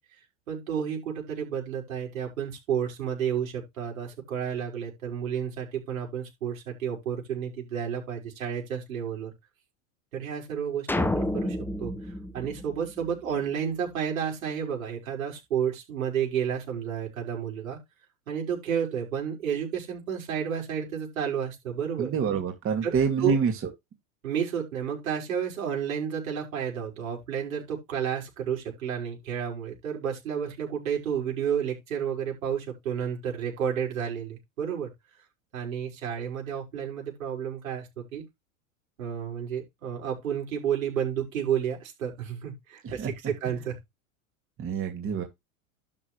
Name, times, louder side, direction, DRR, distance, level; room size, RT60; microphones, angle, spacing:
voice 1, 0.5-9.3 10.1-17.8 18.3-22.1 22.8-23.4 24.2-34.9 35.5-38.2 39.0-43.8, right 8 dB, 90° right, 5.9 m, -31 dB
sound 1, 10.9-13.4, left 1 dB, 5° left, 0.8 m, -30 dB
voice 2, 22.0-23.5 43.0-43.1 44.6-45.2, right 6 dB, 30° right, 2.5 m, -26 dB
12.5 x 6.3 x 3.3 m
hypercardioid pair, 110°, 40 cm